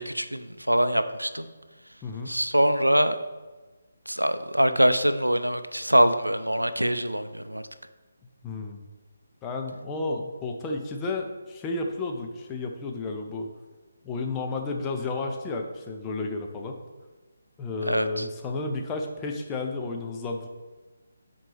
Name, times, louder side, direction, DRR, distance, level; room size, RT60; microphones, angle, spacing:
voice 1, 0.0-1.5 2.3-3.2 4.1-7.6 17.9-18.3, equal, 85° right, 11 dB, 0.4 m, -23 dB
voice 2, 2.0-2.3 8.4-8.8 9.4-13.5 14.0-16.8 17.6-20.5, left 3 dB, 15° left, 2 dB, 0.6 m, -32 dB
8.9 x 4.4 x 3.4 m, 1.3 s
figure-of-eight pair, 145°, 0 cm